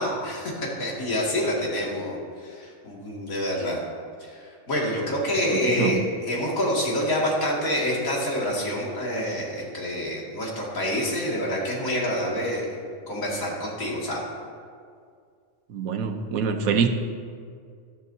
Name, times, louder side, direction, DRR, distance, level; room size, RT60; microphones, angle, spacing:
voice 1, 0.0-3.8 4.2-6.0 6.3-12.7 13.1-14.2, equal, 75° left, -4 dB, 2.8 m, -27 dB
voice 2, 5.5-6.0 15.7-16.9, right 6 dB, 85° right, 6 dB, 1.3 m, -25 dB
13.5 x 13.0 x 2.8 m, 2.1 s
omnidirectional pair, 1.4 m